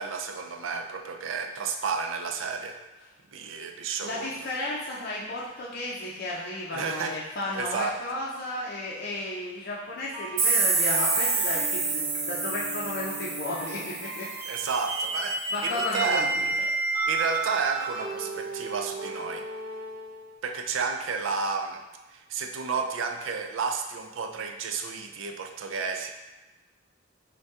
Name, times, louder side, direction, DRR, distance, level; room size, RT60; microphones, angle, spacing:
voice 1, 0.0-2.8 3.3-4.3 6.7-7.2 7.5-8.0 14.5-16.3 17.1-19.4 20.4-21.8 22.1-26.1, right 5 dB, 80° right, 5 dB, 0.4 m, -31 dB
voice 2, 4.0-14.3 15.5-16.6, left 1 dB, 50° left, -5 dB, 0.5 m, -33 dB
sound 1, 10.1-20.3, right 3 dB, 15° right, 0.9 m, -33 dB
sound 2, 10.4-15.0, right 4 dB, 55° right, 0.7 m, -28 dB
5.2 x 2.2 x 3.6 m, 1.1 s
head